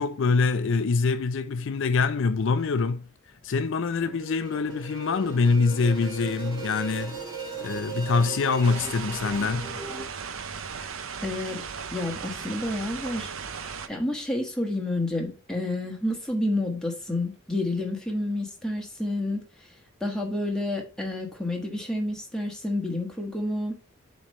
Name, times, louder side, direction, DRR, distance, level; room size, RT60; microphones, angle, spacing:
voice 1, 0.0-3.1 3.4-7.3 7.6-9.7, left 4 dB, 60° left, 0.4 m, -25 dB
sound 1, 4.0-10.0, right 4 dB, 20° right, 3.3 m, -37 dB
sound 2, 8.6-13.9, right 6 dB, 70° right, 0.7 m, -36 dB
voice 2, 11.2-11.6 11.9-13.3 13.9-19.4 20.0-23.7, left 1 dB, 5° left, 1.4 m, -29 dB
7.2 x 3.2 x 5.4 m
head